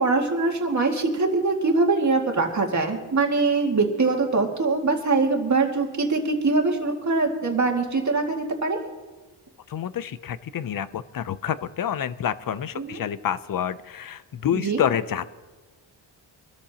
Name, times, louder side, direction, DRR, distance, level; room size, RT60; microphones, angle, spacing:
voice 1, 0.0-8.8 12.8-13.0 14.5-14.8, right 3 dB, 35° right, 2 dB, 2.1 m, -23 dB
voice 2, 9.7-15.3, left 9 dB, 45° left, 15 dB, 0.6 m, -28 dB
25.0 x 13.5 x 2.9 m, 1.3 s
wide cardioid pair, 125°, 47 cm